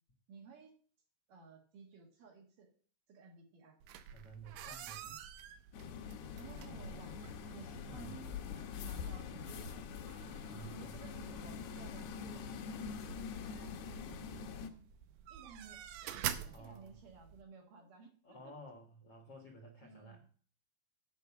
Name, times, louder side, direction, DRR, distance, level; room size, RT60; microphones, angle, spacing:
voice 1, 0.3-0.7 1.3-2.7 3.1-3.8 6.4-7.2 7.5-9.9 10.8-12.6 14.0-14.8 15.3-18.5 19.8-20.2, right 5 dB, 60° right, 1 dB, 2.9 m, -56 dB
sound 1, 3.8-17.4, right 9 dB, 90° right, 1.9 m, -48 dB
voice 2, 4.0-5.2 7.8-8.1 10.4-11.0 16.4-17.0 17.8-17.9 18.2-20.2, right 2 dB, 55° left, 2 dB, 1.7 m, -53 dB
sound 2, 5.7-14.7, left 7 dB, 75° left, 2.8 m, -45 dB
9.2 x 5.7 x 7.1 m, 0.43 s
omnidirectional pair, 5.0 m